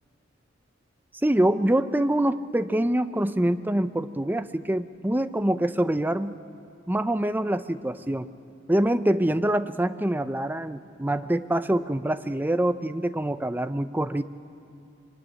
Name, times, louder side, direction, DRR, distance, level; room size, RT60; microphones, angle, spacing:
voice 1, 1.2-6.4 6.9-8.3 8.7-14.2, right 1 dB, 10° right, 10 dB, 0.6 m, -25 dB
25.0 x 23.0 x 9.8 m, 2.7 s
head